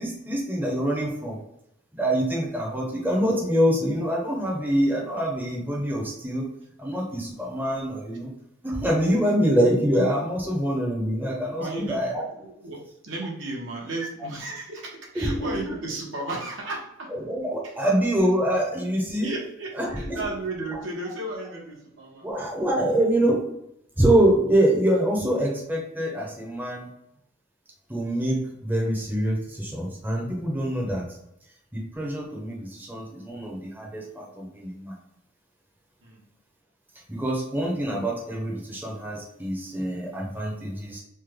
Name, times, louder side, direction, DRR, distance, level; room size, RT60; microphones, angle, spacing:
voice 1, 0.0-1.4 1.9-6.5 6.8-8.3 8.6-12.2 15.2-15.5 17.3-19.3 19.8-20.2 22.2-23.4 24.0-26.9 27.9-31.0 31.7-35.0 37.1-41.0, right 1 dB, 10° right, -3 dB, 0.6 m, -25 dB
voice 2, 11.6-17.2 17.6-17.7 19.2-22.3 36.0-36.2, right 2 dB, 70° right, -1 dB, 0.9 m, -34 dB
3.2 x 2.1 x 3.4 m, 0.79 s
head